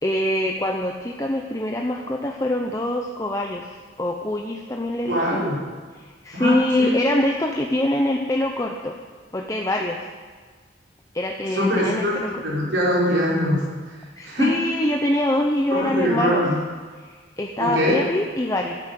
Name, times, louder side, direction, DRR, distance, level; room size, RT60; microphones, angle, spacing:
voice 1, 0.0-5.4 5.9-9.0 9.3-10.1 11.1-12.4 14.2-16.4 17.0-18.8, left 1 dB, 15° left, 1 dB, 0.7 m, -24 dB
voice 2, 5.1-5.6 6.3-7.0 11.5-14.5 15.7-16.5 17.6-18.0, equal, 85° right, -5 dB, 4.6 m, -23 dB
12.0 x 9.6 x 7.9 m, 1.5 s
head